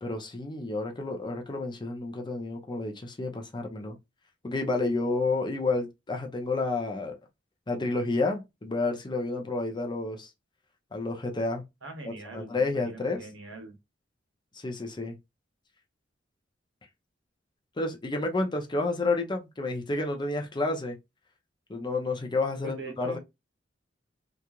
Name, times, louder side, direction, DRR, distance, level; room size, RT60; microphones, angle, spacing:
voice 1, 0.0-4.0 4.4-7.2 7.7-10.3 10.9-11.6 12.1-13.2 14.5-15.2 17.8-21.0 21.7-23.2, left 3 dB, 25° left, 0.5 m, -30 dB
voice 2, 11.8-13.7 22.6-23.2, right 2 dB, 85° right, 1.0 m, -42 dB
2.9 x 2.4 x 2.3 m
head